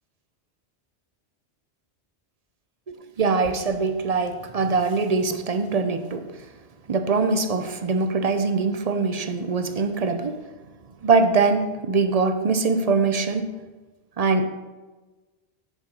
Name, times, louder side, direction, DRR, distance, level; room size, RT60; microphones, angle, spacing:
voice 1, 2.9-6.5 6.9-10.5 11.0-13.5 14.2-14.5, right 4 dB, 45° right, 9 dB, 0.6 m, -23 dB
7.4 x 6.6 x 5.4 m, 1.2 s
omnidirectional pair, 1.1 m